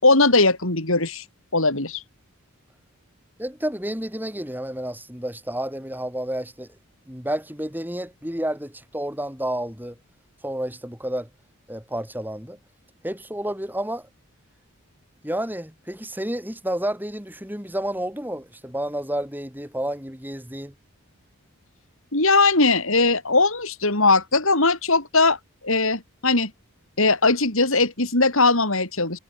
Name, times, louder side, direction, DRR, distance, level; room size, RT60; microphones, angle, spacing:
voice 1, 0.0-1.2 1.5-2.0 22.1-25.4 25.6-26.5 27.0-29.2, left 3 dB, 70° left, 5.6 m, -19 dB
voice 2, 3.4-6.7 7.1-10.0 10.4-11.3 11.7-12.6 13.0-14.1 15.2-20.7, right 1 dB, 10° right, 5.6 m, -30 dB
head